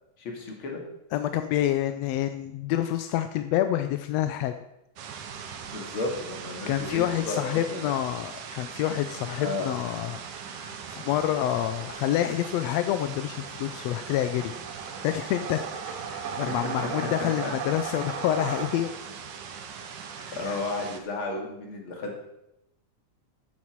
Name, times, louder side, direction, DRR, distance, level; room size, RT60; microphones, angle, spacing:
voice 1, 0.2-0.8 5.7-7.9 9.4-9.7 16.5-16.6 17.2-17.5 20.3-22.2, left 2 dB, 45° left, 1 dB, 2.9 m, -33 dB
voice 2, 1.1-4.5 6.7-10.2 10.6-14.5 15.0-18.9 20.2-20.6, left 12 dB, 80° left, 9 dB, 1.5 m, -28 dB
sound 1, 5.0-21.0, right 6 dB, 85° right, 2.6 m, -40 dB
sound 2, 10.9-19.2, right 6 dB, 65° right, 2.1 m, -38 dB
13.5 x 10.0 x 4.6 m, 0.85 s
omnidirectional pair, 3.5 m